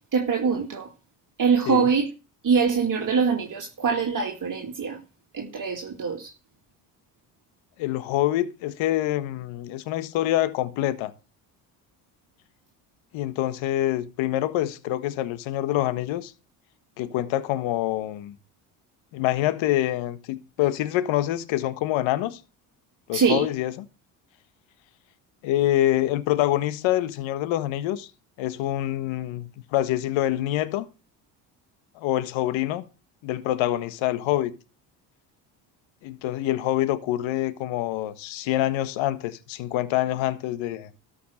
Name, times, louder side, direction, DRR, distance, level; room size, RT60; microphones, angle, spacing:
voice 1, 0.1-0.9 1.4-2.1 2.4-5.0 5.3-6.3 23.1-23.5, right 6 dB, 40° right, 2.3 m, -23 dB
voice 2, 7.8-11.1 13.1-16.3 17.0-18.3 19.1-22.4 23.1-23.7 25.4-28.1 28.4-30.9 31.9-32.8 33.2-34.5 36.0-40.9, left 14 dB, 70° left, 1.5 m, -26 dB
13.5 x 5.8 x 6.3 m
supercardioid pair, 70°, 47 cm